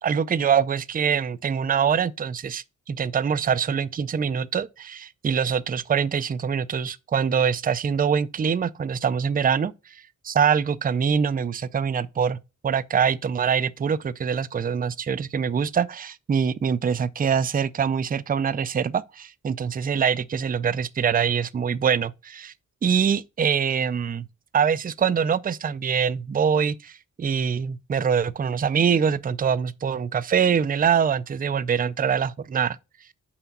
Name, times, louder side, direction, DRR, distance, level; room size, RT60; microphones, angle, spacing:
voice 1, 0.0-12.4 12.6-22.5 22.8-24.3 24.5-32.8, right 7 dB, 30° right, 0.4 m, -24 dB
5.8 x 5.0 x 5.3 m
wide cardioid pair, 120°, 32 cm